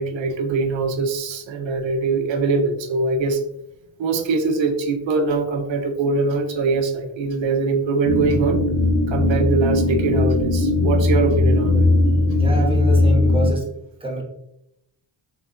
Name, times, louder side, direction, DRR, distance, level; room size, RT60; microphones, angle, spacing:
voice 1, 0.0-3.4 4.0-8.6 9.1-11.8, right 4 dB, 65° right, 6 dB, 0.7 m, -22 dB
sound 1, 8.0-13.5, left 2 dB, 85° left, 1.5 m, -18 dB
voice 2, 12.3-13.7 14.0-14.2, right 1 dB, 10° right, -1 dB, 1.1 m, -26 dB
3.7 x 3.2 x 2.4 m, 0.82 s
cardioid pair, 75°, 48 cm